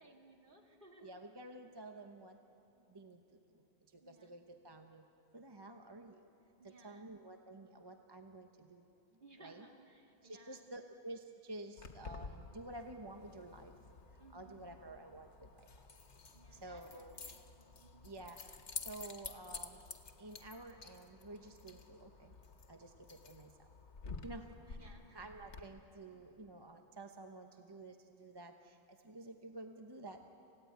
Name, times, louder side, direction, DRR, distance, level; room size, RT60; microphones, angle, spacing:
voice 1, 0.0-1.2 4.0-4.3 5.5-5.9 6.6-7.1 9.0-10.7 14.2-14.7 16.3-18.1 24.2-25.1, right 2 dB, 45° right, 1 dB, 2.3 m, -61 dB
voice 2, 1.0-2.4 2.9-5.1 5.3-6.3 6.6-8.9 9.1-9.7 10.2-13.7 14.1-15.7 16.5-17.2 18.0-19.8 20.2-22.4 22.7-23.7 24.2-30.2, right 2 dB, 25° right, 5 dB, 0.9 m, -51 dB
Keys jangling, 11.8-25.6, left 4 dB, 90° left, 1.6 m, -51 dB
28.5 x 16.5 x 9.2 m, 2.9 s
omnidirectional pair, 1.1 m